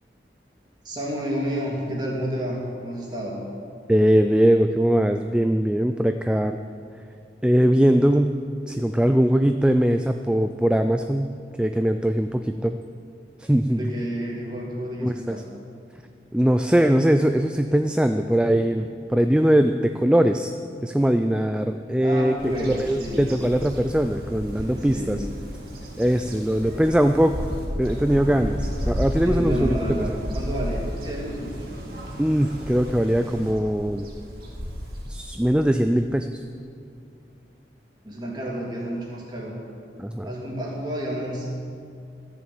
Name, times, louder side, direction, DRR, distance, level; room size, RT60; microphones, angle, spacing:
voice 1, 0.8-3.4 13.7-15.4 22.0-23.3 24.6-25.2 29.2-31.8 38.0-39.6 40.2-41.5, equal, 25° right, -3 dB, 2.6 m, -30 dB
voice 2, 3.9-6.6 7.4-8.4 8.7-11.3 11.6-12.8 13.4-13.8 15.0-15.4 16.3-20.5 20.8-22.3 22.7-25.2 26.0-27.5 27.8-30.0 32.2-34.1 35.1-36.4 40.0-40.3, equal, 5° right, 7 dB, 0.3 m, -21 dB
Bird vocalization bird call bird song, 22.4-35.6, equal, 55° right, 2.4 m, -32 dB
14.0 x 7.2 x 8.5 m, 2.3 s
head